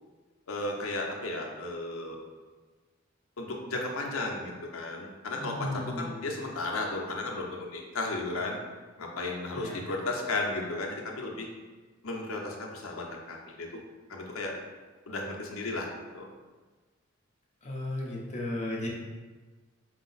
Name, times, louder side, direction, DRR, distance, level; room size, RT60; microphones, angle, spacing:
voice 1, 0.5-2.2 3.4-8.6 9.0-11.5 12.0-13.7 14.1-14.5 15.1-15.9 16.1-16.3, left 2 dB, 85° left, 0 dB, 0.7 m, -34 dB
voice 2, 5.4-6.2 9.5-9.8 17.6-18.9, left 1 dB, 35° left, -3 dB, 0.7 m, -35 dB
4.8 x 2.0 x 3.9 m, 1.3 s
head